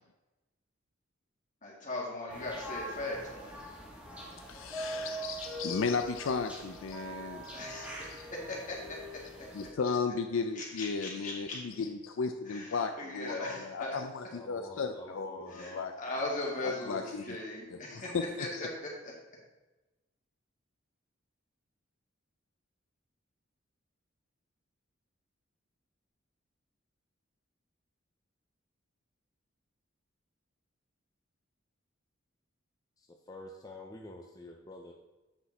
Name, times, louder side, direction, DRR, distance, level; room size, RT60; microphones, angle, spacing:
voice 1, 1.6-3.6 7.5-7.9 8.5-8.8 10.6-11.6 12.5-12.7 13.0-14.0 15.5-18.1 18.4-18.9, left 2 dB, 40° left, -3 dB, 2.2 m, -38 dB
sound 1, 2.3-9.7, right 1 dB, 5° right, 1.5 m, -43 dB
voice 2, 4.5-8.3 9.5-15.9 16.6-17.4 17.7-18.7, left 5 dB, 75° left, 7 dB, 0.4 m, -35 dB
voice 3, 14.3-15.9 33.0-34.9, left 2 dB, 20° left, 1 dB, 0.5 m, -47 dB
8.0 x 5.9 x 4.1 m, 1.1 s
head